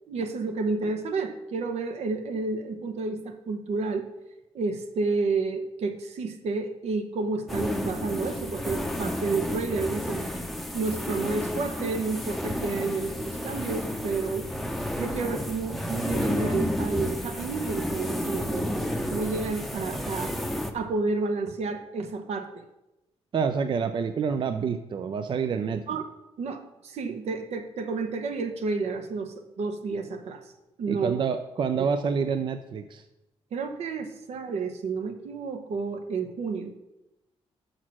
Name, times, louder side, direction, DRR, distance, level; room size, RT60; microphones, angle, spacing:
voice 1, 0.1-4.1 4.5-10.3 10.7-14.5 15.0-20.3 20.7-22.6 25.8-26.1 26.4-30.4 30.8-31.1 31.8-31.9 33.5-36.7, right 4 dB, 80° right, 7 dB, 0.9 m, -30 dB
sound 1, 7.5-20.7, left 1 dB, ahead, 0.6 m, -31 dB
voice 2, 23.3-25.8 30.9-33.0, right 6 dB, 50° right, 9 dB, 0.4 m, -27 dB
6.5 x 6.1 x 6.0 m, 0.95 s
cardioid pair, 125°, 11 cm